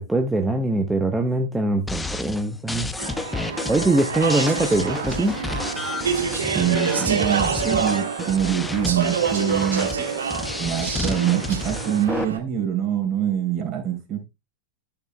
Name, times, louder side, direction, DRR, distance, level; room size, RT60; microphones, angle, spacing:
voice 1, 0.0-2.9 3.7-5.3, right 2 dB, 10° right, 0.9 m, -22 dB
sound 1, 1.9-12.2, left 2 dB, 10° left, 0.6 m, -31 dB
Speech / Chatter, 3.0-12.4, right 6 dB, 70° right, 1.2 m, -27 dB
voice 2, 6.5-9.9 10.6-14.2, right 9 dB, 35° right, 3.5 m, -24 dB
12.5 x 6.7 x 2.2 m
figure-of-eight pair, 90°, 0 cm